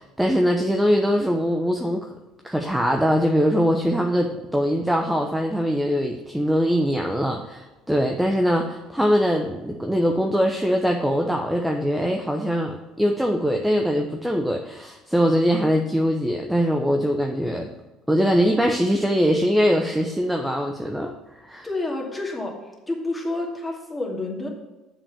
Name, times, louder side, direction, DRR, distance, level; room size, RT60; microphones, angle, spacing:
voice 1, 0.0-2.1 2.4-17.7 18.1-21.7, equal, 5° right, 2 dB, 0.9 m, -22 dB
voice 2, 21.6-22.6 22.9-24.5, left 2 dB, 10° left, -2 dB, 2.4 m, -29 dB
7.1 x 5.5 x 7.1 m, 1.1 s
hypercardioid pair, 65°, 0 cm